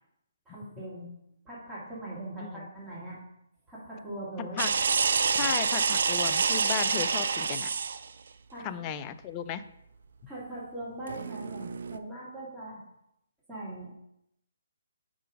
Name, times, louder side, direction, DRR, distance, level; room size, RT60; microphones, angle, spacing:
voice 1, 0.5-1.1 1.5-3.2 3.7-4.8 8.5-8.9 10.3-12.8 13.5-13.9, right 1 dB, 10° right, -8 dB, 2.0 m, -41 dB
voice 2, 2.4-2.7 4.4-4.7 5.3-7.7 8.6-9.6, left 9 dB, 25° left, 11 dB, 0.4 m, -35 dB
sound 1, 4.6-8.1 11.1-12.0, right 5 dB, 60° right, 0.4 m, -27 dB
5.4 x 3.7 x 5.0 m, 0.78 s
figure-of-eight pair, 135°, 0 cm